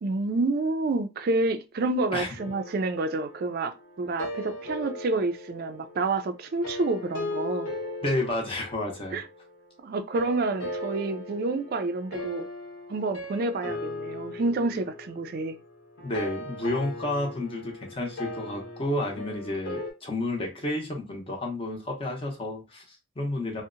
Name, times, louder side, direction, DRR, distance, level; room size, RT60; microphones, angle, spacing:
voice 1, 0.0-7.7 9.1-9.2 9.8-12.5 12.9-15.6, right 2 dB, 50° right, 0.3 m, -28 dB
sound 1, 2.4-9.6 10.1-19.9, left 2 dB, 65° left, 0.9 m, -38 dB
voice 2, 8.0-9.2 16.0-23.6, left 1 dB, 25° left, 0.6 m, -31 dB
2.7 x 2.1 x 2.5 m
head